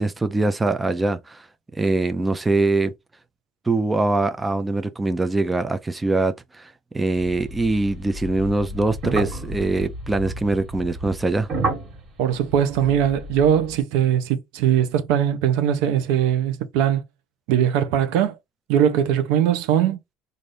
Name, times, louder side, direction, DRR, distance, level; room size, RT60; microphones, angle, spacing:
voice 1, 0.0-1.5 1.7-2.9 3.7-11.5, right 2 dB, 15° right, 0.5 m, -23 dB
sound 1, 7.2-13.8, right 2 dB, 45° right, 1.7 m, -31 dB
voice 2, 12.2-17.0 17.5-18.4 18.7-20.0, right 9 dB, 85° right, 0.7 m, -20 dB
4.1 x 2.6 x 3.2 m
cardioid pair, 130°, 0 cm